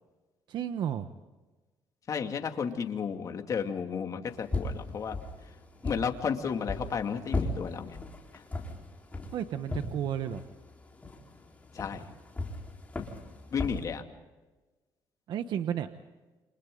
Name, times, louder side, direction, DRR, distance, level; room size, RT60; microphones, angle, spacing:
voice 1, 0.5-1.1 9.3-10.4 15.3-15.9, right 9 dB, 65° right, 9 dB, 1.1 m, -32 dB
voice 2, 2.1-5.2 5.4-5.5 5.8-8.0 8.3-8.4 11.7-12.1 13.5-14.0, left 6 dB, 45° left, 5 dB, 2.5 m, -33 dB
sound 1, 4.2-13.8, left 2 dB, 15° left, 4.2 m, -38 dB
29.5 x 27.0 x 3.9 m, 1.2 s
cardioid pair, 120°, 8 cm